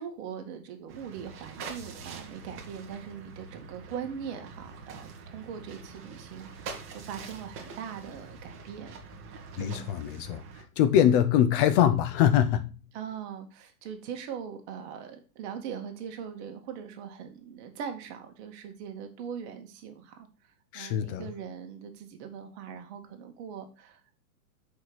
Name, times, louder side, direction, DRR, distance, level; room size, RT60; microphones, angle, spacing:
voice 1, 0.0-9.0 9.5-9.9 12.9-20.3 20.7-24.0, right 7 dB, 45° right, 1.8 m, -41 dB
sound 1, 0.9-10.6, right 4 dB, 25° right, 1.6 m, -45 dB
voice 2, 9.6-10.4 10.8-12.7 20.7-21.3, left 10 dB, 35° left, 0.7 m, -23 dB
6.3 x 5.0 x 5.9 m
hypercardioid pair, 130°, 45 cm